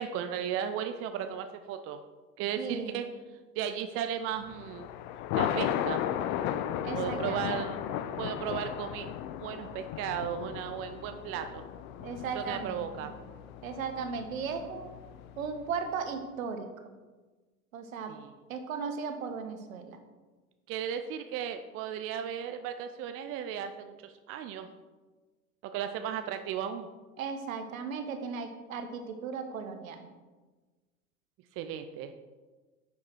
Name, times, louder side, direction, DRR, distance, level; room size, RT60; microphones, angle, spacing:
voice 1, 0.0-2.0 2.4-3.1 3.5-4.9 5.3-6.1 6.9-7.8 8.2-9.1 9.4-11.6 12.3-13.1 18.1-18.3 20.7-24.7 25.7-26.9 31.6-32.1, right 8 dB, 30° right, 8 dB, 0.6 m, -35 dB
voice 2, 2.6-3.1 6.8-8.0 12.0-13.1 13.6-14.9 15.4-16.9 17.7-18.1 18.5-20.0 27.2-30.1, right 5 dB, 65° right, 7 dB, 1.4 m, -37 dB
Thunder, 4.5-15.8, left 10 dB, 25° left, 0.3 m, -36 dB
10.5 x 7.0 x 4.6 m, 1.3 s
figure-of-eight pair, 85°, 44 cm